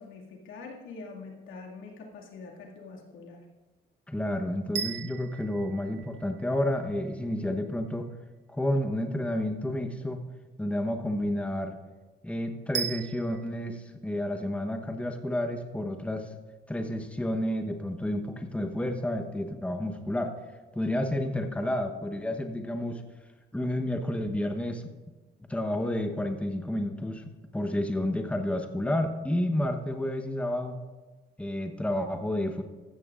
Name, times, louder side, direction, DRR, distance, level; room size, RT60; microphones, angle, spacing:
voice 1, 0.0-3.5, left 4 dB, 85° left, -1 dB, 2.2 m, -44 dB
voice 2, 4.1-8.1 8.5-10.2 10.6-11.8 12.2-16.3 16.7-20.3 20.7-23.0 23.5-24.8 25.5-30.8 31.4-32.6, left 1 dB, 5° left, 6 dB, 1.0 m, -30 dB
sound 1, 4.7-6.9 12.7-13.5, right 9 dB, 65° right, 0.7 m, -37 dB
15.0 x 13.5 x 2.5 m, 1.3 s
cardioid pair, 90°, 20 cm